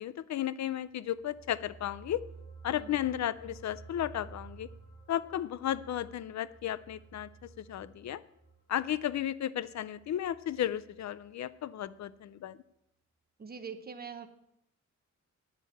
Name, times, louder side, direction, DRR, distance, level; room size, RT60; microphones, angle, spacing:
voice 1, 0.0-2.2 2.6-4.7 5.1-7.3 7.6-8.2 8.7-12.6, left 11 dB, 70° left, 17 dB, 0.5 m, -34 dB
sound 1, 0.9-11.6 11.9-12.1, right 4 dB, 15° left, 4.7 m, -53 dB
voice 2, 13.4-14.3, right 6 dB, 30° right, 8 dB, 0.9 m, -43 dB
9.7 x 7.2 x 8.3 m, 0.82 s
wide cardioid pair, 140°, 29 cm